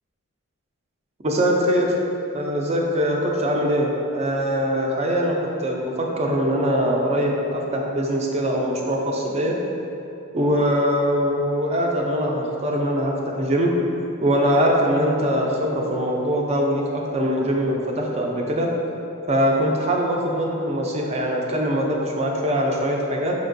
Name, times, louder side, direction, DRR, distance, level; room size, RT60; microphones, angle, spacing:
voice 1, 1.2-2.0 2.3-9.6 10.3-13.7 14.2-18.7 19.3-23.3, equal, 30° right, 0 dB, 0.4 m, -22 dB
5.2 x 2.8 x 2.6 m, 2.8 s
head